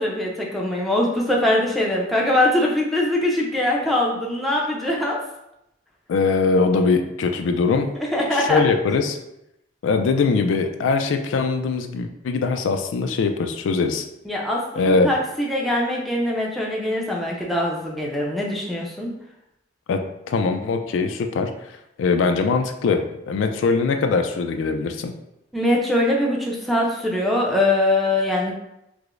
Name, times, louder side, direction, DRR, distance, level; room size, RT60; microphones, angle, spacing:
voice 1, 0.0-5.2 8.1-8.6 14.2-19.1 25.5-28.5, left 1 dB, ahead, -3 dB, 0.5 m, -22 dB
voice 2, 6.1-7.9 8.3-9.2 9.8-14.0 14.8-15.1 19.9-21.5 22.0-25.1, left 4 dB, 80° left, 6 dB, 0.3 m, -21 dB
4.7 x 2.0 x 2.5 m, 0.85 s
head